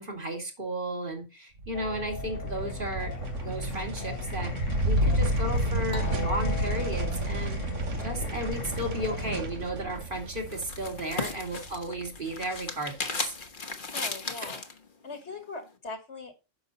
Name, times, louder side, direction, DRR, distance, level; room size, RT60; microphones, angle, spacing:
voice 1, 0.0-4.5 4.8-7.6 8.0-13.4, right 1 dB, 45° right, 2.5 m, -34 dB
sound 1, 1.6-12.2, right 1 dB, 75° right, 1.7 m, -31 dB
Singing, 1.7-9.4, left 8 dB, 85° left, 1.1 m, -40 dB
sound 2, 10.0-14.8, left 4 dB, 45° left, 1.3 m, -36 dB
voice 2, 13.9-14.6 15.0-16.4, left 3 dB, 65° left, 2.1 m, -40 dB
9.6 x 6.2 x 4.0 m
omnidirectional pair, 1.3 m